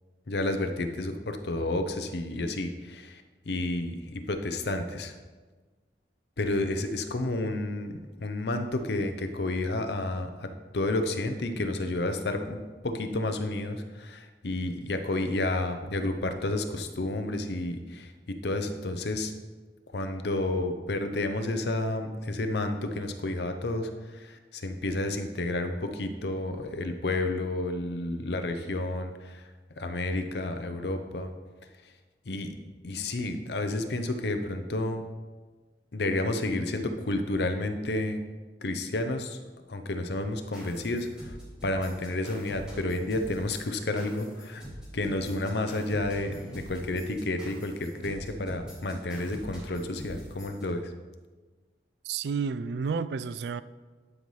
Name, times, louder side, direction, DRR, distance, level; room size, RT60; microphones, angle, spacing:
voice 1, 0.3-5.1 6.4-19.3 19.9-29.4 29.8-31.3 32.3-32.5 32.8-35.0 35.9-38.2 38.6-39.4 39.7-41.4 41.6-44.6 44.9-50.9, left 2 dB, 65° left, 7 dB, 0.7 m, -31 dB
sound 1, 40.5-50.6, equal, 5° right, 2.5 m, -45 dB
voice 2, 52.0-53.6, right 5 dB, 65° right, 16 dB, 0.3 m, -31 dB
11.5 x 5.4 x 3.2 m, 1.3 s
head